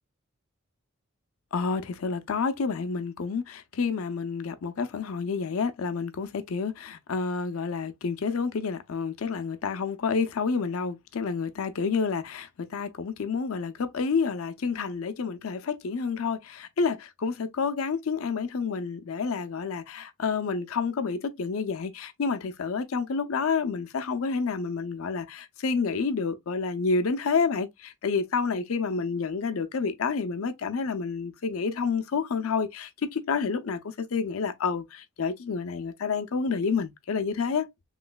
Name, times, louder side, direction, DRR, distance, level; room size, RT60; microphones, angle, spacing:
voice 1, 1.5-37.7, left 5 dB, 85° left, 0.5 m, -29 dB
3.1 x 2.9 x 2.2 m
head